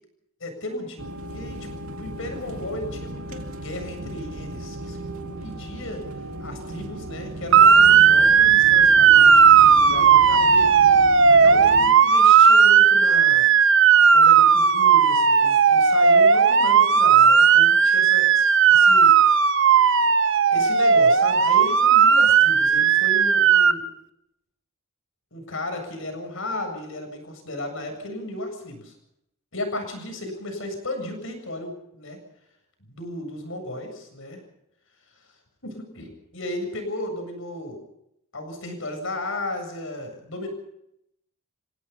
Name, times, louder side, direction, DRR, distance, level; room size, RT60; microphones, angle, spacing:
voice 1, 0.4-1.6 2.0-6.0 6.4-11.0 11.3-13.5 14.1-19.1 20.5-23.8 25.3-28.9 29.5-32.2 32.9-34.4 35.6-37.8 38.3-40.5, left 1 dB, 65° left, 5 dB, 7.6 m, -35 dB
sound 1, 1.0-11.9, right 1 dB, 80° right, 2.3 m, -36 dB
Motor vehicle (road) / Siren, 7.5-23.7, right 6 dB, 60° right, 1.1 m, -15 dB
28.5 x 17.5 x 5.7 m, 0.79 s
head